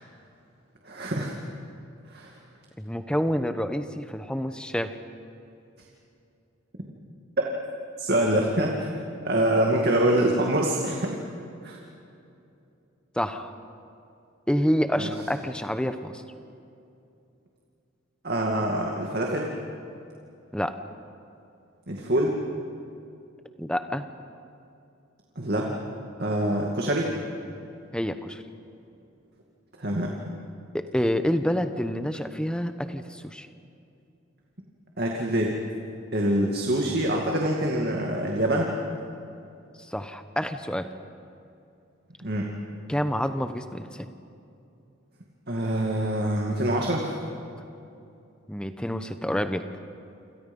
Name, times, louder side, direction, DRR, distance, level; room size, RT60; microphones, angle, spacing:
voice 1, 0.8-1.3 2.1-2.3 8.0-8.9 9.2-11.2 11.6-11.8 15.0-15.1 18.2-19.5 21.9-22.4 25.4-25.7 26.2-27.1 29.8-30.1 35.0-35.6 36.1-38.7 42.2-42.5 45.5-47.1, right 1 dB, 50° right, -1 dB, 2.3 m, -25 dB
voice 2, 2.8-5.0 13.1-13.5 14.5-16.2 20.5-20.7 23.6-24.0 27.9-28.4 30.7-33.5 39.8-40.9 42.9-44.1 48.5-49.6, equal, 5° left, 8 dB, 1.0 m, -28 dB
29.0 x 27.0 x 5.5 m, 2.6 s
head